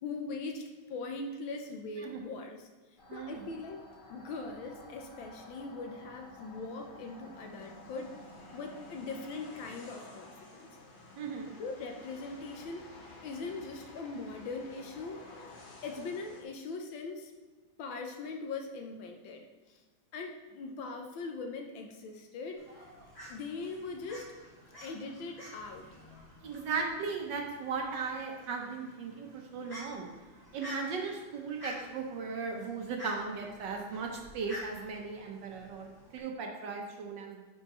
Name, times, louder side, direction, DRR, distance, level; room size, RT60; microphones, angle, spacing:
voice 1, 0.0-2.7 3.1-3.8 4.1-8.1 8.5-10.8 11.6-12.9 13.2-15.3 15.8-17.3 17.8-19.8 20.1-22.6 23.3-24.3 24.8-25.9, left 3 dB, 70° left, 3 dB, 1.5 m, -41 dB
sound 1, 3.0-16.4, left 2 dB, 45° left, 0.7 m, -52 dB
voice 2, 3.1-3.5 11.2-11.5 26.4-30.1 30.5-37.4, right 5 dB, 65° right, 2 dB, 1.4 m, -37 dB
Fowl, 22.6-36.2, left 1 dB, 10° left, 1.7 m, -50 dB
9.2 x 5.6 x 3.0 m, 1.3 s
omnidirectional pair, 2.3 m